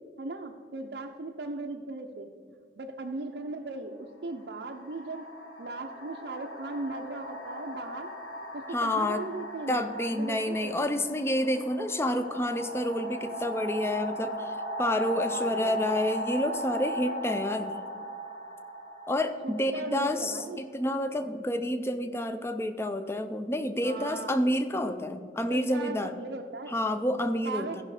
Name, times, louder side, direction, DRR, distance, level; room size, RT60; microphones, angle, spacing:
voice 1, 0.2-2.3 2.8-5.3 5.6-8.1 8.5-10.8 15.1-16.0 19.4-20.6 23.8-24.4 25.5-26.8 27.4-27.8, right 3 dB, 70° right, 1 dB, 0.6 m, -38 dB
sound 1, 3.2-3.4 4.3-21.0, equal, 90° left, 2.1 m, -38 dB
voice 2, 8.7-9.2 9.7-17.7 19.1-26.1 26.7-27.8, left 1 dB, 15° left, 8 dB, 0.5 m, -29 dB
14.0 x 5.7 x 4.9 m, 2.1 s
head